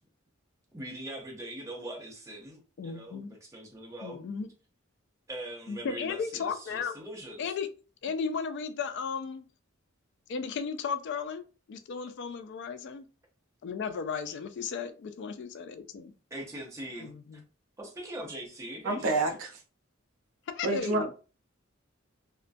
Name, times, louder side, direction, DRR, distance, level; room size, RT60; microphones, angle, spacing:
voice 1, 0.7-4.2 5.3-7.5 14.3-14.4 16.3-17.4 17.8-19.4, right 1 dB, 15° right, 0.6 m, -42 dB
voice 2, 2.8-3.3 4.0-4.5 5.7-7.0 7.4-7.7 8.0-9.4 10.3-11.4 11.7-13.0 13.6-16.1 17.0-17.4 20.5-21.1, left 6 dB, 60° left, 0.3 m, -35 dB
voice 3, 18.9-19.5 20.6-21.1, right 2 dB, 70° right, 0.6 m, -28 dB
2.3 x 2.1 x 2.5 m
head